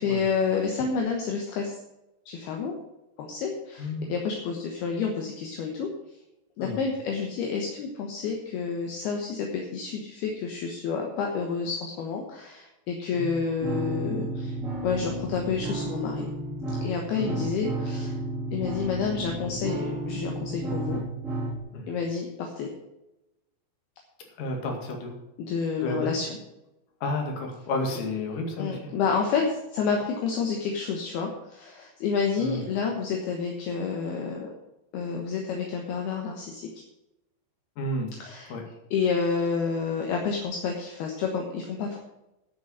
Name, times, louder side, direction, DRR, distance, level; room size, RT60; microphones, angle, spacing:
voice 1, 0.0-1.7 2.3-2.7 3.2-5.9 6.6-14.5 14.8-16.3 16.8-18.2 18.5-21.0 21.9-22.7 25.4-26.4 28.6-34.5 34.9-36.7 38.2-38.5 38.9-42.0, left 5 dB, 70° left, 1 dB, 2.6 m, -29 dB
voice 2, 3.8-4.1 6.6-6.8 13.1-13.4 17.1-17.4 21.7-21.9 24.4-25.1 25.8-26.2 27.0-28.9 32.4-32.6 37.8-38.1 38.5-38.6, left 2 dB, 50° left, 2 dB, 3.0 m, -31 dB
sound 1, 13.6-21.6, right 1 dB, ahead, 2.0 m, -32 dB
10.0 x 7.2 x 8.0 m, 0.92 s
omnidirectional pair, 5.9 m